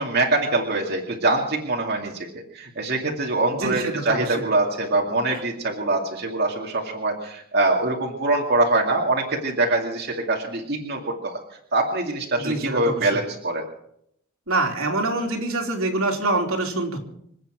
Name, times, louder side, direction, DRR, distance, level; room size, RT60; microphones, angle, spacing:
voice 1, 0.0-2.3 2.5-11.4 11.7-13.6, right 2 dB, 45° right, -1 dB, 2.4 m, -24 dB
voice 2, 3.6-4.2 12.4-13.1 14.5-17.0, right 2 dB, 70° right, 1 dB, 3.3 m, -25 dB
26.5 x 9.0 x 6.1 m, 0.71 s
head